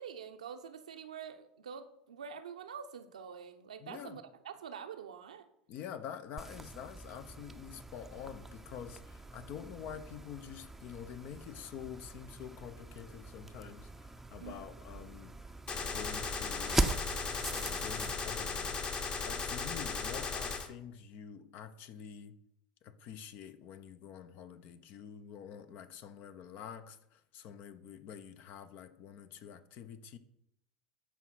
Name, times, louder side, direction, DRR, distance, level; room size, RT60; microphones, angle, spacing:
voice 1, 0.0-5.5 14.4-14.6 14.9-15.1, right 7 dB, 80° right, 0.9 m, -46 dB
voice 2, 3.8-4.2 5.7-17.0 17.5-18.8 19.2-22.3 22.8-30.2, left 8 dB, 50° left, 0.9 m, -47 dB
sound 1, 6.4-18.1, right 2 dB, 5° right, 0.7 m, -41 dB
Gunshot gunfire, 15.7-20.7, left 4 dB, 30° left, 1.4 m, -37 dB
13.5 x 5.0 x 5.7 m
figure-of-eight pair, 80°, 4 cm